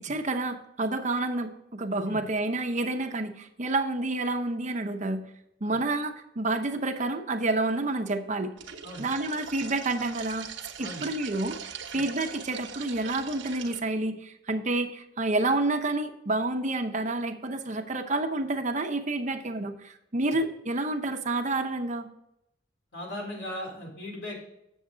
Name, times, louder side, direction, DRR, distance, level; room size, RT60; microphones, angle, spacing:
voice 1, 0.0-5.2 5.6-8.5 9.0-10.5 10.8-22.1, right 2 dB, 40° right, 6 dB, 0.8 m, -29 dB
sound 1, 8.6-13.8, right 7 dB, 75° right, 1.0 m, -41 dB
voice 2, 22.9-24.4, left 1 dB, 85° left, -2 dB, 3.8 m, -38 dB
8.4 x 7.2 x 3.8 m, 0.79 s
head